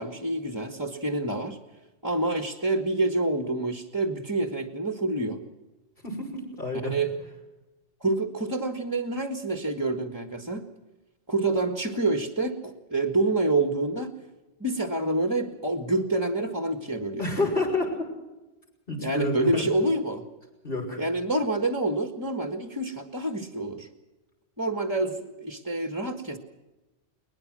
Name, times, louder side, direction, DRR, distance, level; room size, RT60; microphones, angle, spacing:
voice 1, 0.0-1.6 2.0-5.4 6.8-7.1 8.0-10.7 11.3-14.1 14.6-17.3 19.0-20.2 21.0-23.9 24.6-26.4, right 2 dB, 15° right, 7 dB, 1.5 m, -27 dB
voice 2, 6.0-7.0 17.2-17.9 18.9-19.6 20.6-21.0, left 2 dB, 50° left, 0 dB, 6.2 m, -29 dB
21.5 x 20.5 x 6.2 m, 1.1 s
omnidirectional pair, 1.2 m